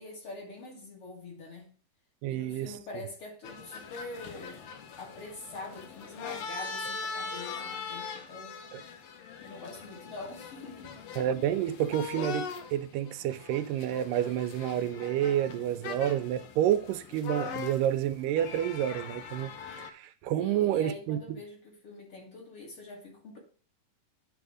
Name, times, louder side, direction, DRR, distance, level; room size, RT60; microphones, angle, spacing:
voice 1, 0.0-1.7 2.3-4.7 5.0-8.6 8.8-9.0 9.4-11.0 20.4-23.4, left 2 dB, 45° left, 2.6 m, -44 dB
voice 2, 2.2-2.7 8.7-8.8 11.2-21.2, right 11 dB, 85° right, 2.2 m, -29 dB
sound 1, 3.4-19.9, left 5 dB, 75° left, 1.5 m, -41 dB
10.0 x 3.5 x 4.9 m
omnidirectional pair, 3.8 m